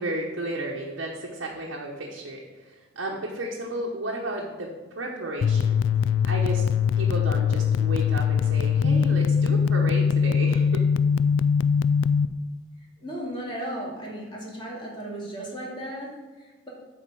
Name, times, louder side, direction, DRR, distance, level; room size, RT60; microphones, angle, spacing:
voice 1, 0.0-4.7 5.0-5.8 6.2-6.6 7.0-10.8, right 1 dB, 75° right, -2 dB, 1.0 m, -33 dB
sound 1, 5.4-12.3, left 6 dB, 70° left, 0.3 m, -22 dB
voice 2, 13.0-16.7, right 1 dB, 25° left, -4 dB, 2.3 m, -35 dB
8.6 x 4.3 x 6.9 m, 1.3 s
head